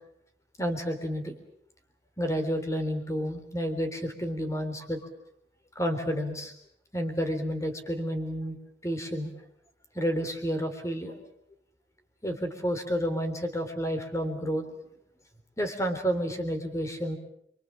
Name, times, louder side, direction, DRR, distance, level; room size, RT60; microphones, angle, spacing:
voice 1, 0.6-1.4 2.2-5.0 5.8-6.5 6.9-8.6 8.8-9.3 9.9-11.3 12.2-14.7 15.6-17.2, equal, 15° left, 7 dB, 3.5 m, -30 dB
28.5 x 24.0 x 7.5 m, 0.74 s
head